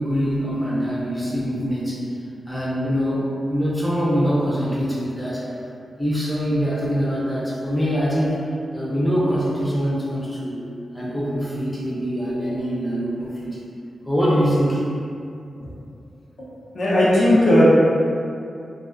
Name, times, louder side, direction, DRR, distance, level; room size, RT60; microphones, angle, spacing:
voice 1, 0.0-2.0 2.5-3.2 3.5-5.4 6.0-8.4 8.7-10.7 10.9-13.6 14.0-14.9, equal, 10° left, -8 dB, 0.6 m, -23 dB
voice 2, 16.7-17.7, equal, 70° left, -9 dB, 0.6 m, -16 dB
2.3 x 2.3 x 2.4 m, 2.5 s
cardioid pair, 60°, 0 cm